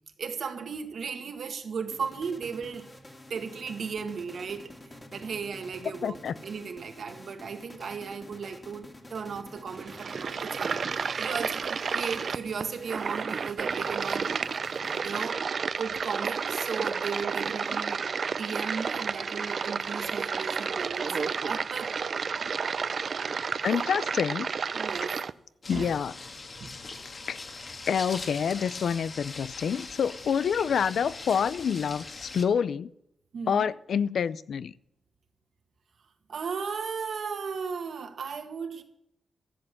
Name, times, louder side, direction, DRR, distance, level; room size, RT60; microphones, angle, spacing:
voice 1, 0.2-2.9 3.3-4.7 5.1-14.3 15.0-15.4 15.8-21.9 23.6-23.9 24.7-25.2 25.7-25.9 26.6-26.7 33.3-33.7 36.3-38.8, right 6 dB, 70° right, 1.8 m, -36 dB
sound 1, 1.9-15.5, left 1 dB, 20° left, 2.2 m, -49 dB
voice 2, 6.0-6.3 23.6-24.5 25.7-26.1 27.3-27.4 27.9-32.9 33.5-34.7, left 7 dB, 80° left, 0.5 m, -27 dB
sound 2, 9.7-25.3, right 5 dB, 50° right, 0.5 m, -31 dB
sound 3, 25.6-32.4, left 3 dB, 40° left, 1.7 m, -41 dB
14.5 x 7.8 x 8.3 m
wide cardioid pair, 140°, 0 cm